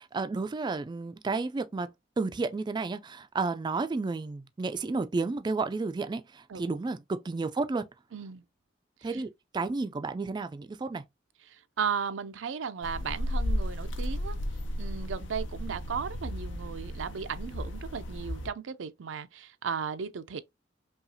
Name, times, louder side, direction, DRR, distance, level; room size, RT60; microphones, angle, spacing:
voice 1, 0.0-1.9 2.2-7.8 9.0-11.0, right 3 dB, 25° right, 0.3 m, -32 dB
voice 2, 8.1-8.4 9.0-9.2 11.5-14.4 14.8-20.4, right 6 dB, 80° right, 0.5 m, -35 dB
sound 1, 12.8-18.5, equal, 75° left, 0.7 m, -34 dB
5.4 x 2.4 x 2.7 m
head